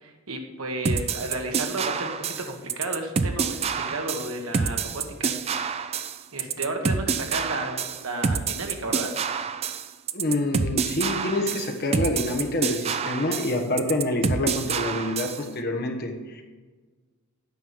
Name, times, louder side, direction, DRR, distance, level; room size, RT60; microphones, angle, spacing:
voice 1, 0.0-2.1 2.5-5.3 5.7-6.0 6.3-9.1, right 2 dB, 75° right, 3 dB, 1.5 m, -33 dB
sound 1, 0.9-15.4, right 5 dB, 30° right, 0.4 m, -27 dB
voice 2, 10.1-16.4, left 1 dB, 45° left, 3 dB, 1.2 m, -27 dB
9.4 x 5.5 x 7.0 m, 1.4 s
head